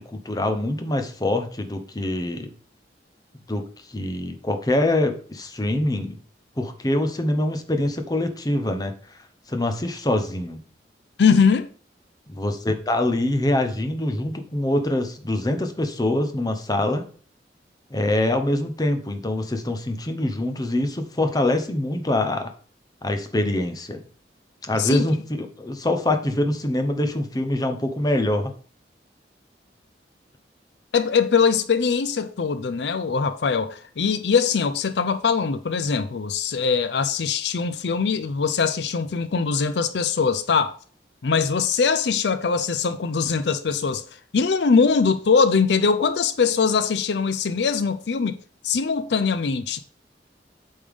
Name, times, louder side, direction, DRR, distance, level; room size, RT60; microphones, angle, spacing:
voice 1, 0.1-2.5 3.5-3.6 3.9-6.2 6.6-8.9 9.5-10.6 12.3-17.0 17.9-22.5 23.0-24.0 24.6-28.5, left 1 dB, 20° left, 0.8 m, -24 dB
voice 2, 11.2-11.7 24.8-25.1 30.9-40.7 41.2-48.4 48.6-49.8, left 5 dB, 75° left, 0.5 m, -22 dB
8.4 x 5.5 x 3.6 m
head